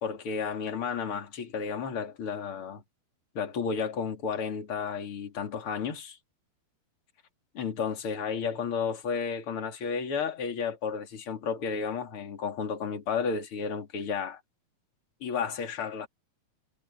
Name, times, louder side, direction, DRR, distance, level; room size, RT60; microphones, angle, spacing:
voice 1, 0.0-2.8 3.4-6.2 7.5-14.4 15.2-16.1, left 6 dB, 35° left, 3.6 m, -32 dB
omnidirectional pair, 4.3 m